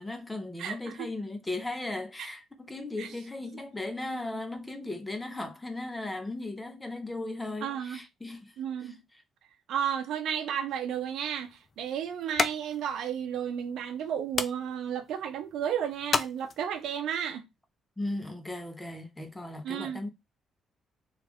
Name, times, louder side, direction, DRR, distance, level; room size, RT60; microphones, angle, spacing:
voice 1, 0.0-8.5 8.8-8.9 18.0-20.1, left 2 dB, 15° left, 0.8 m, -37 dB
voice 2, 0.6-1.1 3.0-3.1 7.6-8.0 8.6-9.0 9.7-17.5 19.6-20.1, right 9 dB, 80° right, 0.6 m, -33 dB
sound 1, 10.7-17.0, left 5 dB, 45° left, 0.4 m, -36 dB
3.2 x 2.5 x 3.4 m
cardioid pair, 90°, 0 cm